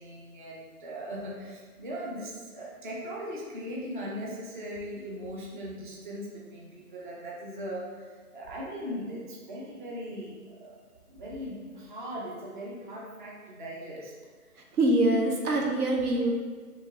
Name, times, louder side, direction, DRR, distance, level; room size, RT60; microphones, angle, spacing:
voice 1, 0.0-10.8 11.1-14.1, equal, 35° right, -4 dB, 0.6 m, -39 dB
voice 2, 14.8-16.3, right 1 dB, 75° right, 1 dB, 0.9 m, -24 dB
4.6 x 3.1 x 2.7 m, 1.5 s
hypercardioid pair, 150°, 45 cm